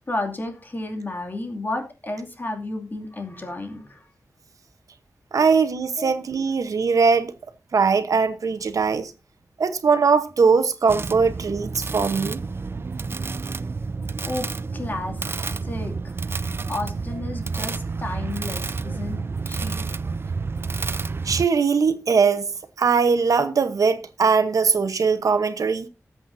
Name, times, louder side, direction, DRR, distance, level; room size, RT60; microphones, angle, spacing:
voice 1, 0.1-4.0 6.0-6.1 9.6-9.8 14.2-14.5 14.7-15.4 15.6-16.0 16.7-19.2 19.5-19.8, left 2 dB, 35° left, 2.6 m, -32 dB
voice 2, 5.3-7.3 7.7-9.1 9.6-12.4 21.2-22.5 22.8-25.9, right 5 dB, 90° right, 1.1 m, -20 dB
sound 1, 10.9-21.5, right 4 dB, 45° right, 0.5 m, -30 dB
19.5 x 7.8 x 2.7 m
wide cardioid pair, 115°, 6 cm